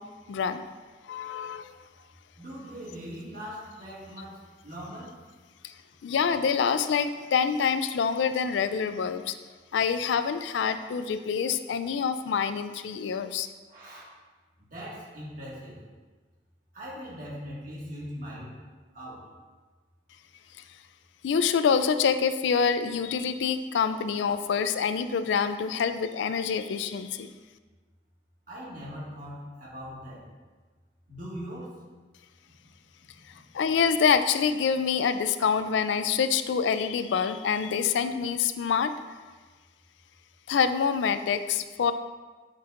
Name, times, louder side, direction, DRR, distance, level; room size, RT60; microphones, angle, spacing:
voice 1, 0.3-0.6 1.1-1.7 5.6-5.7 6.0-9.4 9.7-13.5 21.2-27.3 33.5-38.9 40.5-41.9, left 6 dB, 85° left, 11 dB, 0.4 m, -26 dB
voice 2, 2.4-5.2 13.7-14.0 14.6-15.8 16.7-18.6 18.9-19.3 28.5-30.3 31.1-31.8, equal, 50° right, -6 dB, 1.7 m, -40 dB
8.4 x 6.1 x 2.5 m, 1.4 s
head